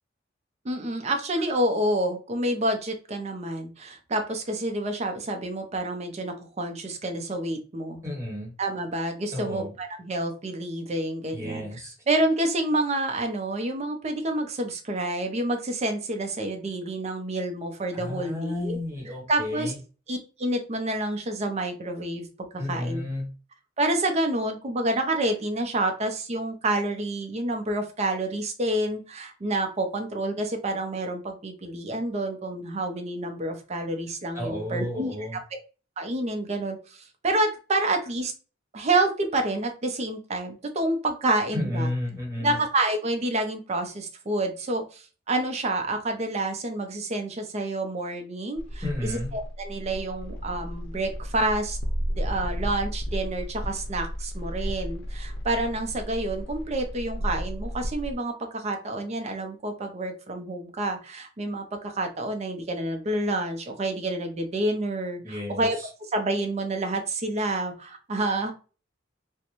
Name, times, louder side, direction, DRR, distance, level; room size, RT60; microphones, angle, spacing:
voice 1, 0.6-8.0 8.6-11.7 12.1-18.8 19.3-19.7 20.1-22.3 22.7-23.0 23.8-35.4 36.0-36.8 37.2-38.3 38.7-41.9 42.4-48.8 49.3-51.8 52.1-65.8 66.1-68.5, right 2 dB, 35° right, 4 dB, 0.5 m, -28 dB
voice 2, 8.0-8.5 9.3-9.7 11.3-11.9 17.9-19.8 22.6-23.3 34.3-35.4 41.5-42.6 48.8-49.3 65.2-65.9, left 1 dB, 15° right, -2 dB, 1.0 m, -32 dB
sound 1, 48.6-58.1, equal, 90° left, 0.5 m, -33 dB
2.5 x 2.2 x 2.9 m, 0.35 s
head